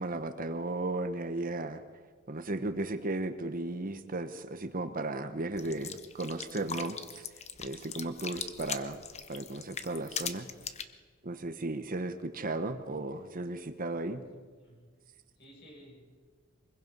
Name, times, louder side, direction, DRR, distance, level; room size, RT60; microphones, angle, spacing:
voice 1, 0.0-1.8 2.3-7.2 7.6-9.0 9.3-10.5 11.2-14.2, right 2 dB, 45° right, 9 dB, 1.1 m, -35 dB
sound 1, 5.6-10.8, left 7 dB, 35° left, 0.9 m, -40 dB
voice 2, 14.3-14.9 15.4-16.0, equal, 55° left, -1 dB, 7.3 m, -55 dB
24.5 x 21.5 x 5.5 m, 1.5 s
head